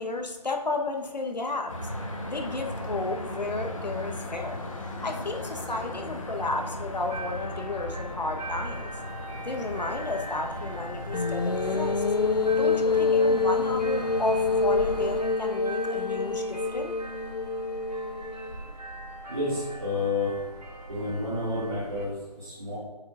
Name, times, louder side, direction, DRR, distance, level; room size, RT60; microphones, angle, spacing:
voice 1, 0.0-1.7 2.3-4.6 5.0-8.9 9.4-12.0 12.5-16.9, left 2 dB, 85° left, 4 dB, 1.1 m, -33 dB
sound 1, 1.7-15.2, left 1 dB, 50° left, 1.1 m, -37 dB
sound 2, 7.1-22.1, right 1 dB, 85° right, 2.2 m, -41 dB
sound 3, 11.1-18.5, left 4 dB, 70° left, 0.5 m, -26 dB
voice 2, 19.3-20.3 20.9-22.8, left 2 dB, 40° right, -10 dB, 2.1 m, -30 dB
8.5 x 6.4 x 2.5 m, 1.3 s
figure-of-eight pair, 175°, 21 cm